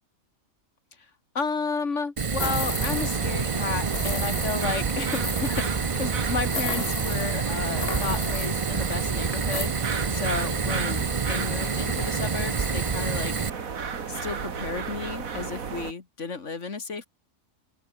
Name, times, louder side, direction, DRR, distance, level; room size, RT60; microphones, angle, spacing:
voice 1, 1.3-9.8 10.1-13.3 14.1-17.1, left 4 dB, 60° left, 2.4 m, -32 dB
Fire, 2.2-13.5, right 5 dB, 30° right, 0.6 m, -28 dB
sound 1, 2.4-3.3 3.5-3.6 3.9-5.7 6.5-7.4 7.8-8.6 9.4-9.7, left 2 dB, 45° left, 5.8 m, -34 dB
sound 2, 2.4-15.9, right 6 dB, 85° right, 2.2 m, -34 dB
open air
omnidirectional pair, 1.4 m